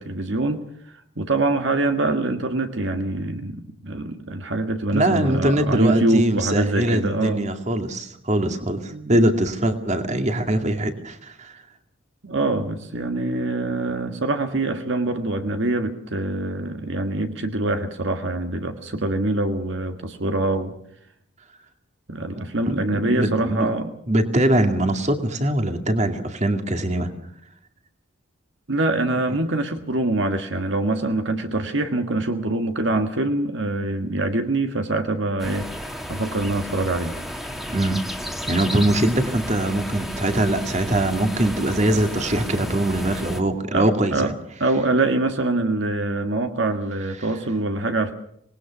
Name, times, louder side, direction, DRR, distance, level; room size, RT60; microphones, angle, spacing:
voice 1, 0.0-7.4 8.9-9.3 12.2-20.7 22.1-23.9 28.7-37.2 43.7-44.3 44.6-48.1, right 2 dB, 60° right, 6 dB, 1.7 m, -24 dB
voice 2, 4.9-11.5 13.0-13.1 22.6-23.8 24.1-27.1 29.3-29.4 37.7-38.0 38.5-44.3, right 1 dB, 35° right, 6 dB, 2.3 m, -22 dB
sound 1, 35.4-43.4, equal, ahead, 1.9 m, -33 dB
26.0 x 20.0 x 6.1 m, 0.71 s
head